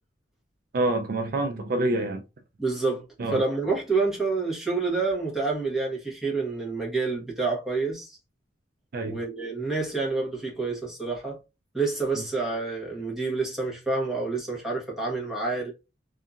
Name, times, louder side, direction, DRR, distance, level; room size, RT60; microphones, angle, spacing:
voice 1, 0.7-2.2 3.2-3.4 8.9-9.2, right 2 dB, 50° right, 0.3 m, -26 dB
voice 2, 2.6-3.0 3.3-8.2 9.1-11.4 11.7-15.7, right 3 dB, ahead, 1.0 m, -28 dB
2.7 x 2.5 x 2.4 m
head